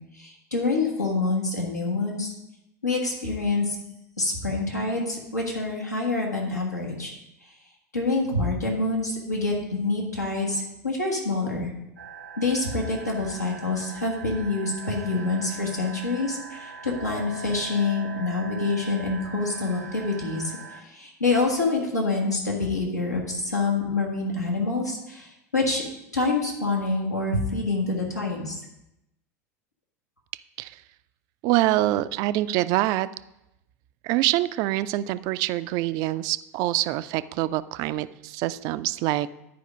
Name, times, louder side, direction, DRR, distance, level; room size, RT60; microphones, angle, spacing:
voice 1, 0.1-2.3 2.8-3.8 4.2-7.1 7.9-11.7 12.4-25.8 26.1-28.6, left 3 dB, 85° left, -2 dB, 1.6 m, -26 dB
sound 1, 12.0-20.8, right 4 dB, 85° right, 1.1 m, -41 dB
voice 2, 31.4-33.1 34.0-39.3, right 16 dB, 45° right, 14 dB, 0.3 m, -25 dB
10.5 x 5.0 x 5.1 m, 0.88 s
figure-of-eight pair, 80°, 9 cm